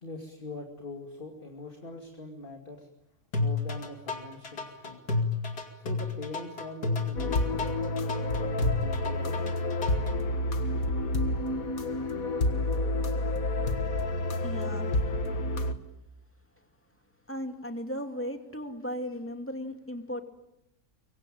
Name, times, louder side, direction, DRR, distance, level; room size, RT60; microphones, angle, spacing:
voice 1, 0.0-2.9 3.4-5.0 5.7-7.7 8.3-9.4, left 2 dB, 35° left, 3 dB, 2.6 m, -42 dB
sound 1, 3.3-10.1, left 3 dB, 85° left, 3.1 m, -31 dB
sound 2, 7.2-15.7, left 2 dB, 65° left, 2.1 m, -29 dB
voice 2, 13.7-15.0 17.3-20.2, equal, 10° left, 5 dB, 2.6 m, -37 dB
24.5 x 24.0 x 9.0 m, 0.84 s
omnidirectional pair, 1.6 m